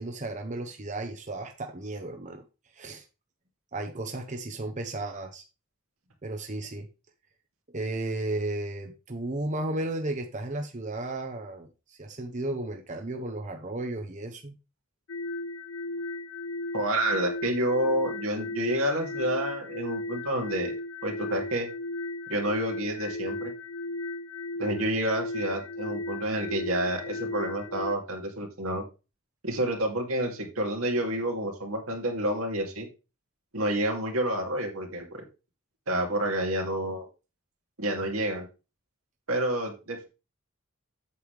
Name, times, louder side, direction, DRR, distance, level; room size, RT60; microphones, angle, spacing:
voice 1, 0.0-2.4 2.7-3.0 3.7-5.4 6.2-6.9 7.7-14.6, right 2 dB, 35° right, 5 dB, 0.9 m, -34 dB
sound 1, 15.1-27.9, left 2 dB, 70° left, 0.6 m, -36 dB
voice 2, 16.7-20.8 21.0-21.7 22.3-23.5 24.6-28.8 29.4-32.9 33.5-35.2 35.9-37.1 37.8-38.5 39.3-40.1, right 1 dB, 85° right, 2 dB, 2.7 m, -29 dB
8.3 x 7.8 x 3.4 m, 0.29 s
head